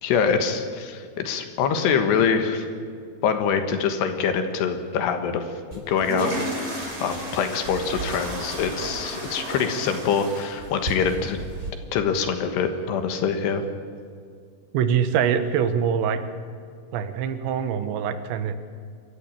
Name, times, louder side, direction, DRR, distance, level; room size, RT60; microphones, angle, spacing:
voice 1, 0.0-2.7 3.2-5.5 5.7-6.5 7.0-11.4 11.9-13.6, left 6 dB, 70° left, 7 dB, 3.3 m, -24 dB
sound 1, 5.7-11.7, right 1 dB, 15° right, 4.1 m, -33 dB
voice 2, 14.7-16.2 16.9-18.6, right 8 dB, 75° right, 10 dB, 3.3 m, -24 dB
26.5 x 14.0 x 8.9 m, 2.2 s
omnidirectional pair, 5.3 m